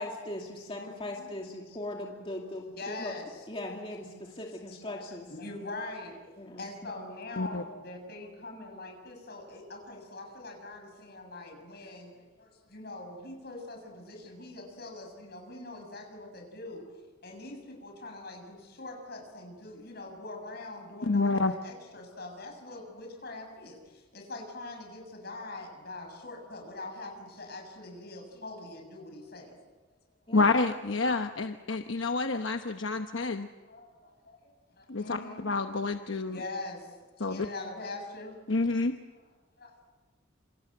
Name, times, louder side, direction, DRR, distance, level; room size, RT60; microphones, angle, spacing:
voice 1, 0.0-3.1 3.5-5.3 6.4-6.6 30.3-30.4, left 1 dB, 25° left, 0 dB, 2.6 m, -39 dB
voice 2, 0.7-1.4 1.6-1.8 2.7-3.4 4.7-5.0 5.3-16.8 17.2-29.5 32.9-33.0 33.3-35.5 36.3-38.3 39.6-39.8, left 2 dB, 50° left, 3 dB, 7.1 m, -43 dB
voice 3, 21.0-21.5 30.3-33.5 34.9-36.4 37.2-37.5 38.5-39.0, left 3 dB, 70° left, 6 dB, 1.0 m, -28 dB
28.0 x 26.5 x 8.0 m, 1.3 s
head